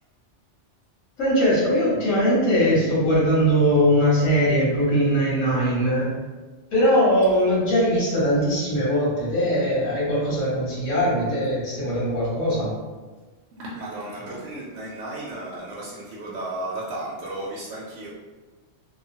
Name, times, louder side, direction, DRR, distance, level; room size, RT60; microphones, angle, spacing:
voice 1, 1.2-6.1 6.7-12.7, equal, 90° left, -7 dB, 1.5 m, -21 dB
voice 2, 13.6-18.1, right 1 dB, 75° right, -5 dB, 0.9 m, -34 dB
2.9 x 2.1 x 2.7 m, 1.3 s
omnidirectional pair, 1.3 m